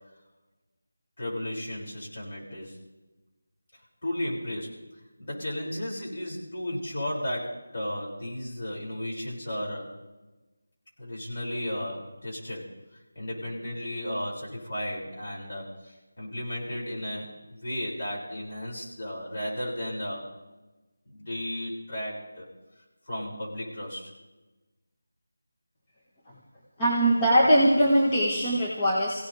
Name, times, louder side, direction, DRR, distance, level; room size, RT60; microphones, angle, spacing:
voice 1, 1.2-2.8 3.7-10.0 11.0-20.2 21.0-22.5 23.0-24.1, left 1 dB, 50° left, -4 dB, 6.5 m, -34 dB
voice 2, 26.8-29.3, equal, 20° left, -5 dB, 1.8 m, -21 dB
24.5 x 17.0 x 3.5 m, 1.1 s
figure-of-eight pair, 165°, 0 cm